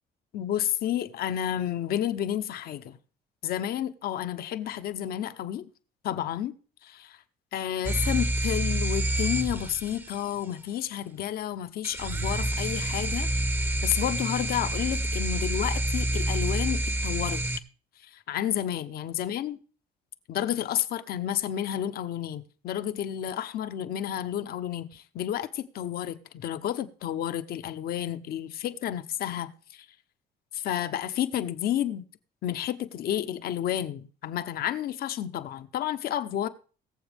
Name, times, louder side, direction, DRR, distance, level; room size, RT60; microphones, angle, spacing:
voice 1, 0.3-3.0 3.4-5.7 6.0-6.6 6.8-7.2 7.5-13.3 13.8-17.4 18.0-19.6 20.3-29.9 30.5-32.0 32.4-36.5, left 11 dB, 65° left, 0.9 m, -31 dB
Toy Drone Engine Close, 7.8-10.2 11.8-17.6, right 1 dB, 10° right, 0.7 m, -28 dB
21.5 x 7.3 x 3.4 m
cardioid pair, 110°, 17 cm